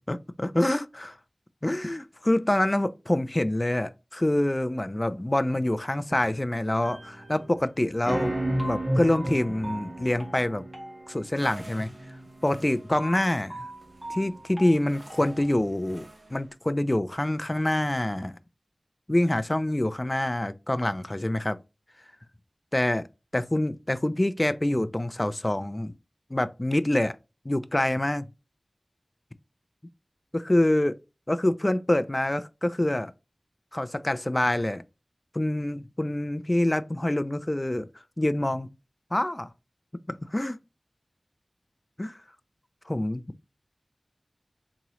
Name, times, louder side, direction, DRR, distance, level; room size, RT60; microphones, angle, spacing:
voice 1, 0.1-1.2 1.6-8.4 8.6-10.6 11.1-11.9 12.4-13.7 14.1-18.3 19.1-21.6 22.7-23.0 23.3-25.9 26.3-27.2 27.5-28.3 30.3-31.0 31.3-33.1 33.7-34.8 35.3-37.9 38.2-38.7 39.1-39.5 40.3-40.6 42.0-42.2 42.9-43.2, left 1 dB, 30° left, 0.4 m, -26 dB
sound 1, 6.8-7.6 8.0-15.5, right 1 dB, 15° right, 1.6 m, -34 dB
sound 2, 11.4-16.5, right 2 dB, 60° right, 1.3 m, -50 dB
3.6 x 3.0 x 2.9 m
wide cardioid pair, 50°, 0 cm